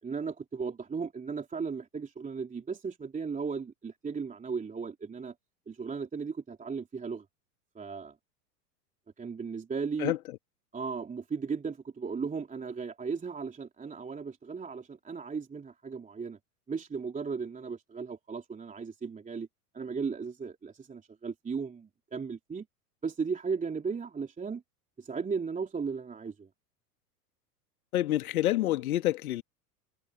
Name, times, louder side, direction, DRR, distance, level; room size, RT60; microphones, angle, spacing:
voice 1, 0.0-5.3 5.7-7.2 7.7-8.1 9.2-10.1 10.7-16.4 16.7-19.5 19.7-22.6 23.0-24.6 25.0-26.5, right 5 dB, 15° right, 3.3 m, -36 dB
voice 2, 27.9-29.4, left 14 dB, 60° left, 1.9 m, -27 dB
figure-of-eight pair, 90°, 48 cm